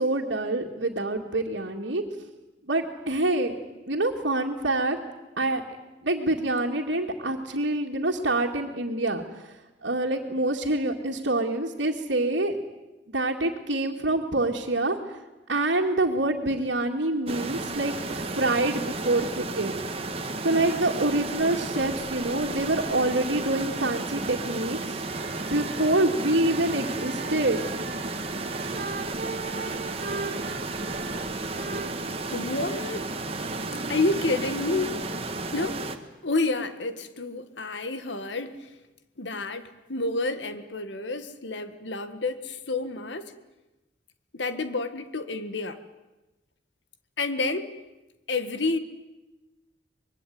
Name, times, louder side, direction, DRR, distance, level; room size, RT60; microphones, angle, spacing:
voice 1, 0.0-2.0 2.6-3.5 3.9-5.0 5.4-5.6 6.0-9.5 9.8-12.6 13.1-15.2 15.5-19.8 20.4-25.1 25.5-27.6, right 2 dB, 85° right, -3 dB, 2.3 m, -26 dB
sound 1, 17.3-36.0, right 2 dB, 35° right, 1.8 m, -33 dB
sound 2, 25.0-34.7, right 4 dB, 50° right, 1.3 m, -40 dB
voice 2, 32.3-33.1 33.6-35.0 35.5-35.8 36.2-38.7 39.2-43.3 44.3-45.8 47.2-47.7 48.3-48.8, left 3 dB, 80° left, 10 dB, 1.7 m, -29 dB
25.0 x 21.5 x 9.5 m, 1.1 s
head